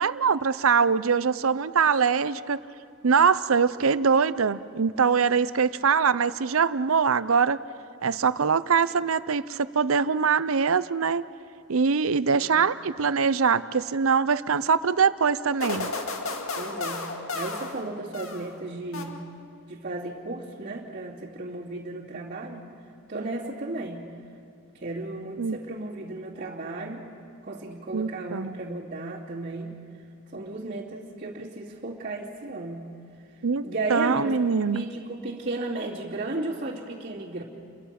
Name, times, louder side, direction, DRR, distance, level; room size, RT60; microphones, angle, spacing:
voice 1, 0.0-2.6 3.0-7.6 8.0-11.2 11.7-15.9 25.4-25.6 27.9-28.6 33.4-34.8, right 5 dB, 75° right, 15 dB, 0.7 m, -23 dB
voice 2, 12.3-12.7 16.6-19.2 19.7-22.6 23.1-24.1 24.7-27.0 27.4-29.8 30.3-32.9 33.6-34.4 34.7-37.4, right 2 dB, 40° right, -8 dB, 2.6 m, -34 dB
sound 1, 15.6-18.6 18.9-19.6, left 3 dB, 80° left, 2.1 m, -34 dB
29.5 x 23.0 x 5.9 m, 2.3 s
head